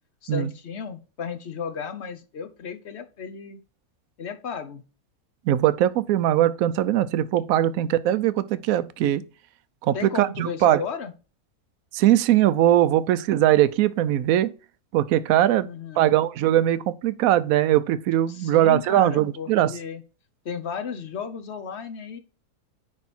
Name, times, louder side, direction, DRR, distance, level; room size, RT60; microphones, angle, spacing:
voice 1, 0.2-3.6 4.2-4.8 9.9-11.1 15.6-16.2 18.3-20.0 20.4-22.2, left 6 dB, 50° left, 1.1 m, -34 dB
voice 2, 5.5-9.2 9.8-10.8 11.9-14.5 14.9-15.7 16.0-19.7, right 12 dB, 75° right, 1.0 m, -20 dB
9.7 x 3.4 x 4.2 m
omnidirectional pair, 1.6 m